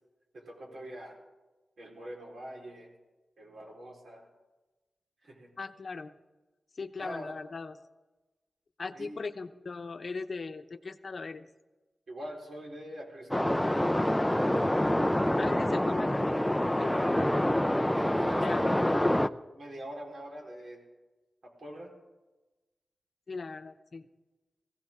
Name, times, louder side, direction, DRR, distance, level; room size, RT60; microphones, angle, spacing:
voice 1, 0.3-1.2 1.8-2.9 3.4-4.3 5.2-5.5 7.0-7.3 8.9-9.2 12.1-13.5 16.9-17.1 17.9-19.1 19.5-20.8 21.4-21.9, equal, 65° right, -1 dB, 4.2 m, -43 dB
voice 2, 5.6-6.1 6.8-7.8 8.8-11.5 15.4-16.4 16.7-17.0 18.4-18.6 23.3-24.1, left 4 dB, 50° left, 9 dB, 0.9 m, -38 dB
sound 1, 13.3-19.3, left 1 dB, 5° left, 0.4 m, -26 dB
20.5 x 16.0 x 3.7 m, 1.1 s
wide cardioid pair, 100°, 0 cm